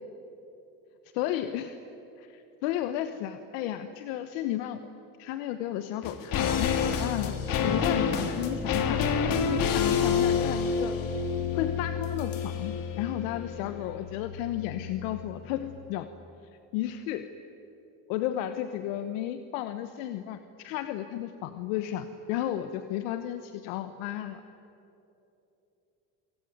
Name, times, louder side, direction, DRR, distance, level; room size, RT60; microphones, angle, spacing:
voice 1, 1.1-1.8 2.2-4.9 5.2-7.4 7.6-9.0 9.3-10.9 11.5-16.1 16.7-17.3 18.1-24.4, left 12 dB, 85° left, 10 dB, 1.1 m, -33 dB
sound 1, 6.0-15.4 15.7-15.8, left 6 dB, 60° left, 2.7 m, -29 dB
26.0 x 24.5 x 9.3 m, 3.0 s
supercardioid pair, 90°, 39 cm